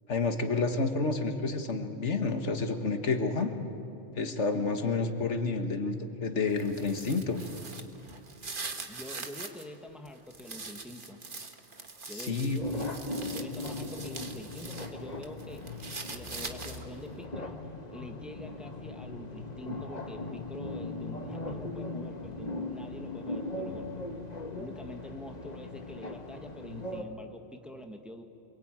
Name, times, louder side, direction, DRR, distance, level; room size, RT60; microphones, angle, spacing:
voice 1, 0.1-3.5 4.2-7.4 12.1-12.6, left 4 dB, 75° left, 6 dB, 1.8 m, -29 dB
sound 1, 6.5-9.6 10.1-14.9 15.2-17.0, right 3 dB, 45° right, 1.6 m, -43 dB
voice 2, 8.9-11.2 12.1-17.6 17.9-24.0 24.5-28.2, left 1 dB, ahead, 4 dB, 1.4 m, -46 dB
sound 2, 12.6-27.0, left 2 dB, 35° left, 1.5 m, -39 dB
28.0 x 22.5 x 9.0 m, 2.8 s
omnidirectional pair, 1.2 m